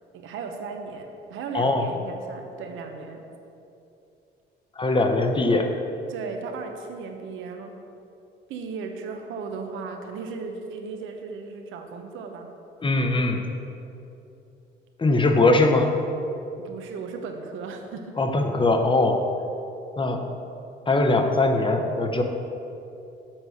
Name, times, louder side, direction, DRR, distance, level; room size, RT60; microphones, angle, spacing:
voice 1, 0.1-3.2 6.1-7.8 8.5-12.5 16.6-18.1, right 5 dB, 85° right, 4 dB, 0.9 m, -36 dB
voice 2, 1.5-1.8 4.8-5.7 12.8-13.4 15.0-15.9 18.2-19.2 20.0-20.3 20.9-22.2, left 2 dB, 25° left, 5 dB, 0.9 m, -21 dB
7.3 x 4.7 x 6.6 m, 2.8 s
cardioid pair, 90°, 20 cm